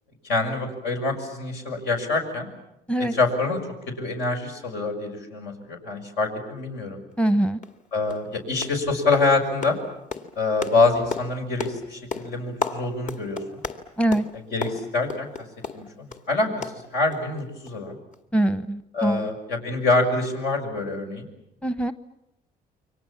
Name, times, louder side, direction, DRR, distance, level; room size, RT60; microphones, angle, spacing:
voice 1, 0.2-2.5 3.0-3.6 4.0-7.0 7.9-9.8 10.4-13.6 14.3-15.3 15.7-18.0 18.9-21.3, left 3 dB, 85° left, 3 dB, 6.5 m, -25 dB
Clap Hands, 7.1-7.2 7.6-7.8 8.1-8.3 8.6-8.9 9.1-16.3 16.6-17.4 17.6-17.8 18.1-18.2, left 4 dB, 50° left, 2.3 m, -35 dB
voice 2, 7.2-7.6 14.0-14.2 18.3-19.3 21.6-21.9, right 1 dB, 5° left, 12 dB, 0.9 m, -23 dB
29.0 x 24.0 x 7.3 m, 0.87 s
cardioid pair, 110°, 17 cm